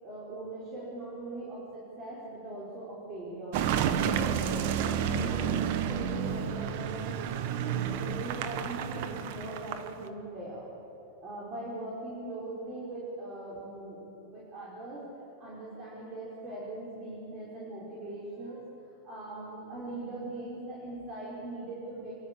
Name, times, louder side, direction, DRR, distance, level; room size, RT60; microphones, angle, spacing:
voice 1, 0.0-3.6 4.0-7.2 7.5-10.6 11.2-15.0 15.4-18.6 19.0-22.3, right 2 dB, 35° right, -7 dB, 5.4 m, -40 dB
Car passing by / Engine, 3.5-10.1, right 8 dB, 60° right, 1.2 m, -30 dB
27.5 x 12.0 x 8.6 m, 3.0 s
supercardioid pair, 130°, 0 cm